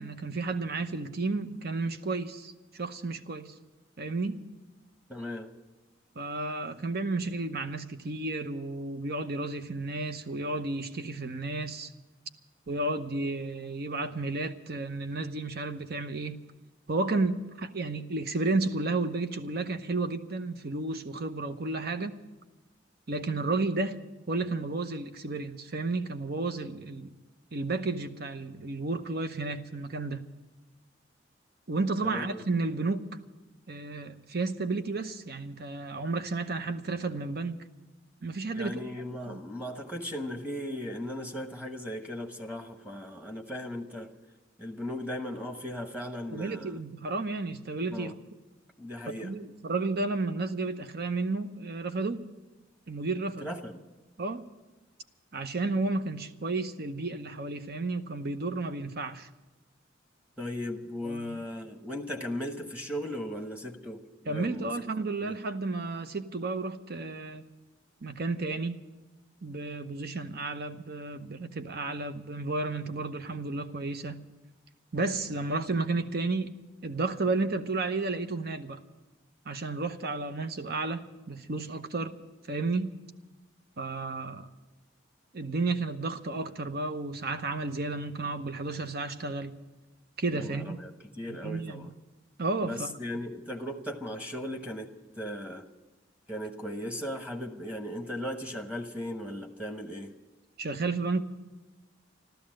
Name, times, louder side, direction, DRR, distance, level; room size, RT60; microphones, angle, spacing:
voice 1, 0.0-3.5 4.0-4.4 6.2-11.9 12.7-16.4 16.9-22.1 23.1-24.0 24.3-27.1 27.5-30.2 31.7-33.1 33.7-37.7 38.2-38.8 39.3-39.4 46.3-48.2 49.2-52.2 52.9-53.5 54.2-54.4 55.3-59.3 61.0-61.4 64.2-67.5 68.0-68.8 69.4-74.2 74.9-76.5 76.8-78.8 79.5-82.1 82.5-82.9 83.8-84.5 85.3-89.5 90.2-90.8 91.3-91.9 92.4-93.0 100.6-101.2, right 3 dB, 55° right, 0.9 m, -32 dB
voice 2, 5.1-5.5 32.0-32.2 38.5-44.1 44.6-46.8 47.9-48.1 48.8-49.3 53.4-53.8 60.4-64.7 65.2-65.4 90.3-91.9 92.6-94.9 95.2-95.6 96.3-100.1, left 1 dB, 5° right, 1.1 m, -37 dB
14.0 x 13.0 x 7.6 m
head